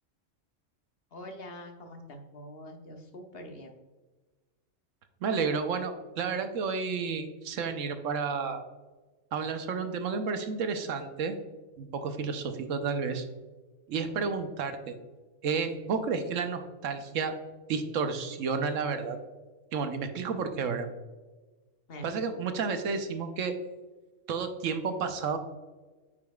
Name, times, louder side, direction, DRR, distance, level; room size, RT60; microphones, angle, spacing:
voice 1, 1.1-3.7 21.9-22.1, equal, 55° left, 4 dB, 1.0 m, -44 dB
voice 2, 5.2-8.6 9.3-11.3 11.8-13.3 13.9-14.9 15.4-17.3 17.7-19.2 19.7-20.9 22.0-23.5 24.3-25.4, right 5 dB, 85° right, 7 dB, 1.1 m, -31 dB
8.2 x 5.1 x 2.3 m, 1.3 s
omnidirectional pair, 1.3 m